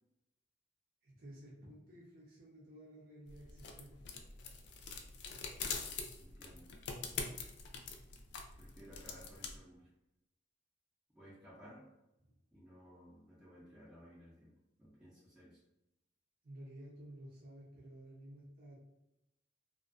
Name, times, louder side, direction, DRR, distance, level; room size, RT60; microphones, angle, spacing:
voice 1, 1.0-3.9 16.4-18.8, right 1 dB, 55° right, -5 dB, 0.6 m, -53 dB
sound 1, 3.3-9.6, left 5 dB, 65° left, 0.4 m, -44 dB
voice 2, 6.2-6.7 8.6-9.9 11.1-11.9 12.5-14.5 14.8-15.6, equal, 5° right, -9 dB, 0.5 m, -57 dB
2.5 x 2.2 x 2.4 m, 0.90 s
head